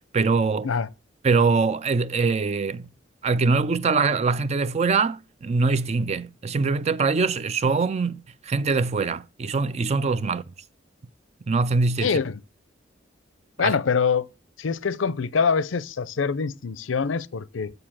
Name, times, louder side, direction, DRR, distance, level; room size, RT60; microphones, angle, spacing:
voice 1, 0.1-0.7 1.2-2.9 3.2-10.4 11.5-12.1 13.6-13.8, right 4 dB, 35° right, 0.4 m, -23 dB
voice 2, 12.0-12.4 13.6-14.3 14.6-17.7, left 5 dB, 85° left, 0.5 m, -24 dB
6.8 x 6.7 x 7.4 m
head